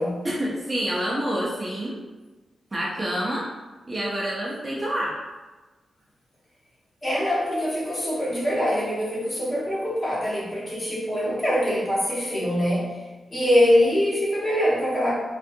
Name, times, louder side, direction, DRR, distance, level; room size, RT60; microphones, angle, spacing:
voice 1, 0.2-2.0 2.7-3.4 3.9-5.2, right 1 dB, 25° right, -5 dB, 0.5 m, -27 dB
voice 2, 7.0-13.0 13.3-15.1, equal, 25° left, -6 dB, 0.7 m, -23 dB
2.6 x 2.3 x 2.5 m, 1.2 s
wide cardioid pair, 155°, 0 cm